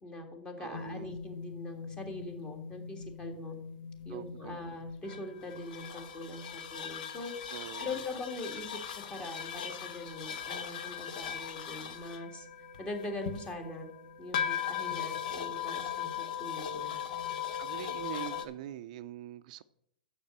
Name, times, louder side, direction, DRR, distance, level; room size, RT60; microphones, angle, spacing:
voice 1, 0.0-3.6 4.1-7.3 7.8-12.5 12.8-13.9 14.2-17.0, left 2 dB, 20° left, 1.8 m, -42 dB
voice 2, 0.6-1.1 4.1-4.6 7.5-8.0 17.6-19.6, right 13 dB, 55° right, 0.4 m, -43 dB
sound 1, 0.7-18.5, left 8 dB, 65° left, 1.0 m, -39 dB
6.8 x 6.6 x 7.4 m
hypercardioid pair, 125°, 5 cm